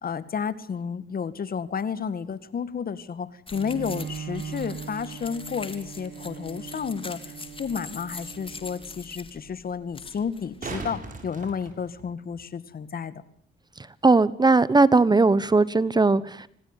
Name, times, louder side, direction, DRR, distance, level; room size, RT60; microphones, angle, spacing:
voice 1, 0.0-7.2 7.6-13.2, left 6 dB, 50° left, 15 dB, 2.1 m, -31 dB
sound 1, 3.5-11.0, left 3 dB, 25° left, 3.9 m, -43 dB
Bowed string instrument, 3.5-9.1, right 7 dB, 60° right, 2.4 m, -40 dB
sound 2, 7.4-7.5 10.2-12.4 15.3-15.4, right 3 dB, 40° right, 7.3 m, -39 dB
voice 2, 14.0-16.5, right 3 dB, 20° right, 18 dB, 1.2 m, -19 dB
26.0 x 19.0 x 9.2 m, 0.66 s
cardioid pair, 90°, 20 cm